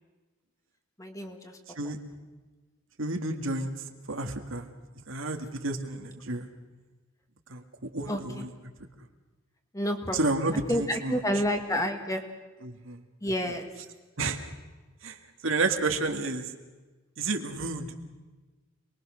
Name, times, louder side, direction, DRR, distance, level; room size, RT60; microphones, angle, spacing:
voice 1, 1.0-1.5 8.1-8.4 9.7-10.2 10.7-12.2 13.2-13.7, equal, 15° left, 5 dB, 2.0 m, -29 dB
voice 2, 3.0-3.7 4.1-4.7 5.1-6.5 7.5-8.5 10.1-11.2 12.6-13.0 14.2-14.4 15.0-16.5 17.2-17.9, right 3 dB, 70° right, 5 dB, 2.1 m, -31 dB
27.5 x 21.5 x 6.5 m, 1.3 s
head